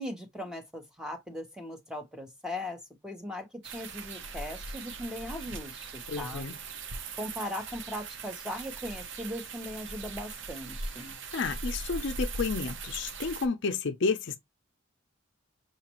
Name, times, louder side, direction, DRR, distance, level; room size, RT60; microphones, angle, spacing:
voice 1, 0.0-3.5 3.7-6.4 7.2-11.2, left 1 dB, 5° right, 1.0 m, -39 dB
sound 1, 3.6-13.5, right 3 dB, 60° right, 0.6 m, -40 dB
voice 2, 6.1-6.6 11.3-14.4, left 4 dB, 60° left, 0.5 m, -31 dB
6.1 x 2.5 x 2.9 m
head